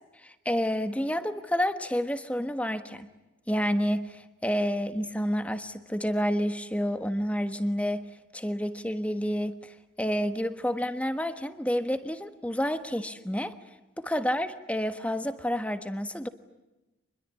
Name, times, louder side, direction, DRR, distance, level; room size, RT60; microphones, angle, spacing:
voice 1, 0.2-3.1 3.5-8.0 8.3-13.6 14.0-16.3, equal, 5° left, 10 dB, 1.4 m, -29 dB
26.0 x 21.5 x 9.8 m, 1.0 s
head